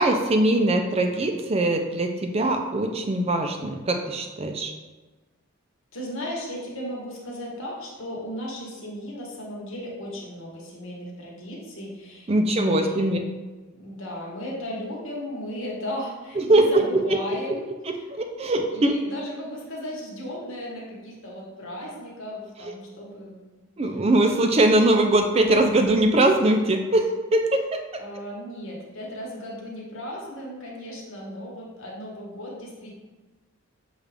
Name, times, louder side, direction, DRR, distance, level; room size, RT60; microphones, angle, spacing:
voice 1, 0.0-4.7 12.3-13.2 16.4-16.8 17.1-17.2 17.9-18.9 23.8-28.0, right 1 dB, 30° right, 5 dB, 0.4 m, -21 dB
voice 2, 5.9-13.1 13.7-17.6 17.9-18.0 18.4-23.3 28.0-32.9, equal, 70° left, -3 dB, 1.2 m, -36 dB
6.6 x 2.4 x 3.4 m, 1.2 s
head